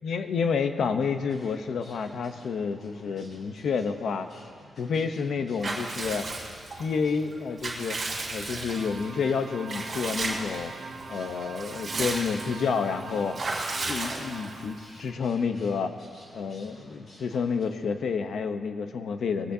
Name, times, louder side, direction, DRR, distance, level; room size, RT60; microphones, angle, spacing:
voice 1, 0.0-4.3 4.8-6.3 6.8-8.0 8.3-10.7 11.1-13.4 13.9-15.9 16.3-19.5, left 5 dB, 70° left, 8 dB, 0.8 m, -29 dB
sound 1, 1.0-17.7, left 1 dB, 50° left, 3.6 m, -52 dB
Water / Bathtub (filling or washing) / Liquid, 5.6-6.8 7.3-9.0 9.7-10.6 11.0-11.1 11.4-12.6 13.3-14.6, right 3 dB, 35° right, 2.3 m, -33 dB
sound 2, 8.7-15.2, right 4 dB, 50° right, 1.0 m, -43 dB
20.0 x 17.0 x 2.8 m, 2.1 s
wide cardioid pair, 160°, 0 cm